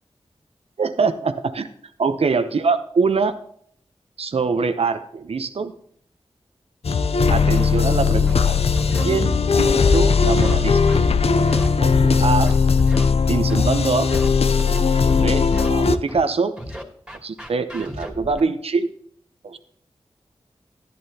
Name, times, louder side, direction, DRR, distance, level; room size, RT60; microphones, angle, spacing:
voice 1, 0.8-1.7 2.0-3.4 4.2-5.7 7.3-8.6 9.0-10.8 11.8-12.6 13.3-14.1 14.9-16.5 17.2-18.9 19.4-19.6, right 4 dB, 70° right, 9 dB, 0.7 m, -23 dB
sound 1, 6.8-16.0, left 5 dB, 70° left, 0.6 m, -18 dB
Scratching (performance technique), 8.3-8.4 8.8-9.0 9.6-10.5 10.9-11.1 11.4-11.7 12.1-13.0 13.5-13.6 14.0-14.3 14.7-15.7 16.1-16.2 16.6-18.4, equal, 10° right, 2.6 m, -35 dB
11.0 x 11.0 x 2.8 m, 0.64 s
cardioid pair, 40°, 11 cm